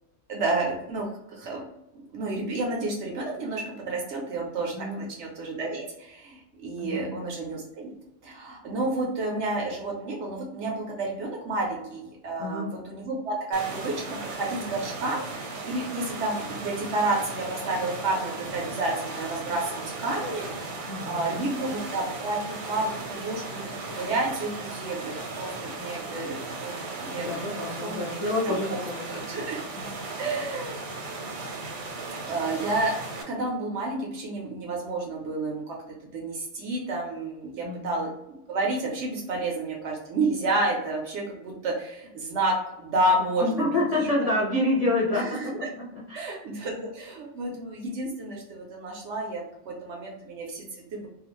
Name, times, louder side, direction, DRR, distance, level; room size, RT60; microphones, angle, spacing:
voice 1, 0.3-1.6 1.9-7.9 8.2-27.4 27.8-28.2 28.5-28.8 29.1-29.6 30.2-30.8 32.2-32.9 33.3-35.8 36.0-38.1 38.5-43.8 44.2-44.3 45.1-45.7 46.1-51.1, right 2 dB, 65° right, -1 dB, 0.8 m, -30 dB
voice 2, 6.8-7.1 12.4-12.7 20.9-21.5 25.8-25.9 27.1-29.1 29.8-29.9 37.6-38.0 43.4-45.7 46.1-46.4, left 2 dB, 35° left, -8 dB, 0.6 m, -28 dB
sound 1, 13.5-33.2, right 3 dB, 90° right, 1.1 m, -36 dB
2.4 x 2.3 x 2.9 m, 0.86 s
omnidirectional pair, 1.4 m